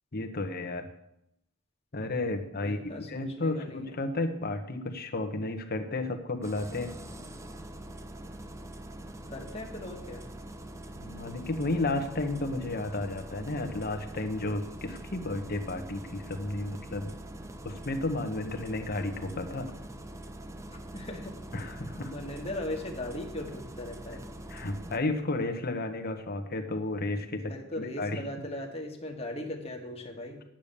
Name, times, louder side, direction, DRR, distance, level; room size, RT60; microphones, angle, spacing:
voice 1, 0.1-0.9 1.9-2.8 3.1-6.9 11.0-17.1 17.6-19.7 21.5-22.1 24.5-28.2, left 2 dB, 50° left, 7 dB, 1.2 m, -32 dB
voice 2, 2.6-4.0 9.3-10.2 20.7-21.3 22.1-24.2 27.5-30.4, left 1 dB, 30° left, 2 dB, 1.7 m, -38 dB
Engine starting, 6.4-25.0, right 1 dB, 15° right, 0.7 m, -44 dB
9.2 x 8.8 x 6.8 m, 0.82 s
head